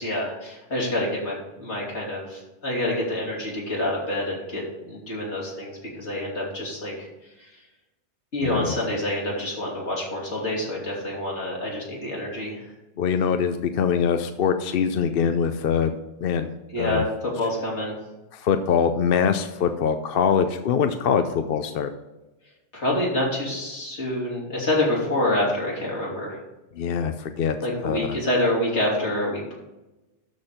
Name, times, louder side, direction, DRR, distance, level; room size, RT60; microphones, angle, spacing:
voice 1, 0.0-7.1 8.3-12.7 16.7-17.9 22.7-26.4 27.6-29.5, left 1 dB, 75° left, -4 dB, 3.2 m, -27 dB
voice 2, 8.4-8.8 13.0-15.9 16.2-16.5 16.8-17.0 18.3-21.9 26.8-27.5 27.8-28.2, left 7 dB, 60° left, 8 dB, 0.7 m, -23 dB
12.5 x 4.4 x 5.0 m, 1.0 s
omnidirectional pair, 1.2 m